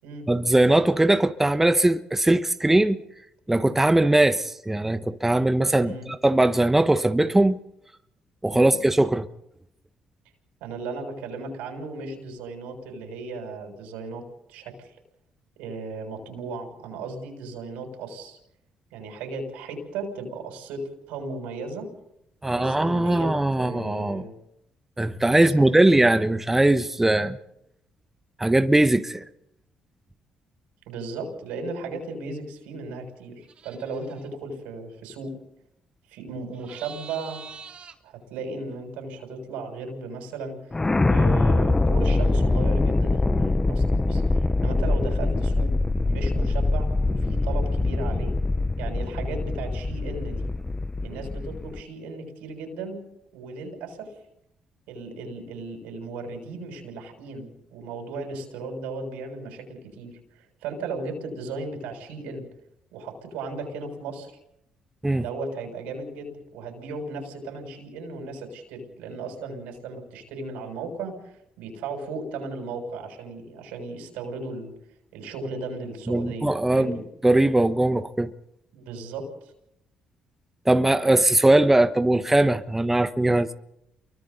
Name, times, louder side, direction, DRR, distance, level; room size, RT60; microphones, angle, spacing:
voice 1, 0.3-3.0 3.5-7.6 8.4-9.3 22.4-24.2 25.0-27.4 28.4-29.2 65.0-65.2 76.1-77.0 77.2-78.3 80.6-83.5, right 1 dB, 10° right, 1.2 m, -20 dB
voice 2, 10.6-14.2 14.5-14.9 15.6-18.4 18.9-21.9 22.4-24.3 25.3-25.7 30.9-35.3 36.1-37.5 38.0-40.6 41.0-45.7 46.0-48.3 48.8-50.5 51.0-53.0 53.3-54.1 54.9-62.5 62.9-64.3 65.2-74.7 75.1-77.0 78.7-79.3, right 3 dB, 90° right, 6.6 m, -36 dB
sound 1, 33.4-34.3 36.5-38.0, right 6 dB, 50° right, 3.0 m, -45 dB
sound 2, 40.7-51.8, left 2 dB, 20° left, 0.7 m, -23 dB
29.5 x 24.0 x 4.0 m
supercardioid pair, 70°, 2 cm